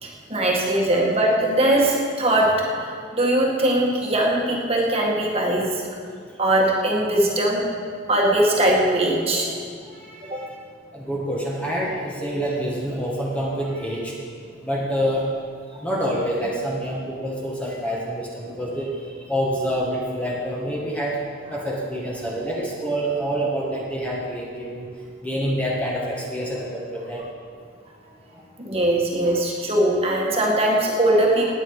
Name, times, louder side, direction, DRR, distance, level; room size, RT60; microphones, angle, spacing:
voice 1, 0.0-2.5 2.8-5.7 6.4-7.6 8.1-9.6 10.3-10.4 15.7-15.8 28.6-31.5, right 1 dB, 30° right, -2 dB, 1.9 m, -20 dB
voice 2, 9.9-10.5 10.9-14.1 14.6-15.3 15.8-21.2 21.5-24.9 25.2-27.2, equal, 5° left, -4 dB, 1.7 m, -27 dB
18.5 x 8.9 x 4.9 m, 2.1 s
head